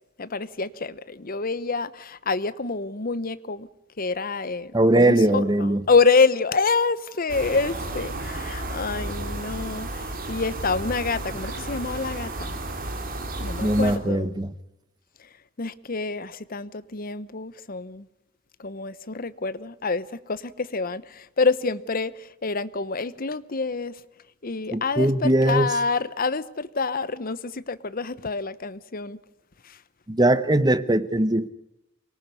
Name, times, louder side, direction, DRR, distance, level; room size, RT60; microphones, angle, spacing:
voice 1, 0.2-3.7 4.0-12.6 13.4-14.3 15.2-15.3 15.6-18.1 18.6-24.0 24.4-29.2 29.6-29.8, left 4 dB, 45° left, 0.9 m, -27 dB
voice 2, 4.7-5.8 13.6-14.5 24.7-25.7 30.1-31.5, right 1 dB, 20° right, 0.9 m, -20 dB
sound 1, 7.3-14.0, right 2 dB, 45° right, 3.2 m, -33 dB
25.0 x 19.0 x 9.6 m
head